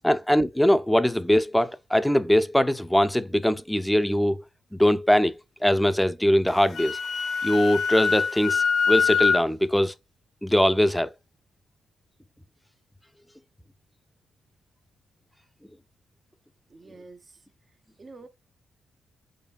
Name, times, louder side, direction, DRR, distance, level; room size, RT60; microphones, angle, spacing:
voice 1, 0.0-4.4 4.7-7.0 7.4-9.9 10.4-11.1, equal, 5° left, 0.4 m, -22 dB
Wind instrument woodwind instrument, 6.5-9.4, left 5 dB, 65° left, 0.5 m, -24 dB
voice 2, 16.7-17.2 18.0-18.3, right 3 dB, 40° right, 0.5 m, -46 dB
3.9 x 3.3 x 2.3 m
supercardioid pair, 50°, 0 cm